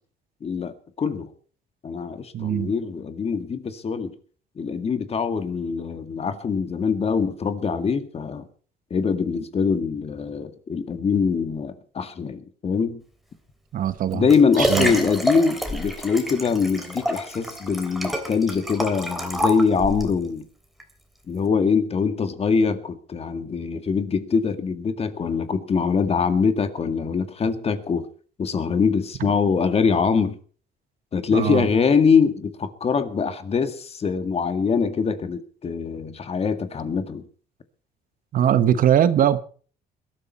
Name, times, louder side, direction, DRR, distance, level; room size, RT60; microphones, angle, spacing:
voice 1, 0.4-1.3 1.8-4.2 4.6-8.4 8.9-13.0 14.1-20.4 21.3-28.1 28.4-30.4 31.1-37.2, left 5 dB, 35° left, 2.0 m, -23 dB
voice 2, 2.3-2.7 13.7-14.3 14.6-14.9 29.2-29.3 31.3-31.7 38.3-39.4, right 10 dB, 55° right, 1.1 m, -21 dB
Liquid, 13.9-20.2 20.8-20.9, equal, ahead, 3.1 m, -28 dB
21.5 x 13.0 x 4.2 m
cardioid pair, 110°, 17 cm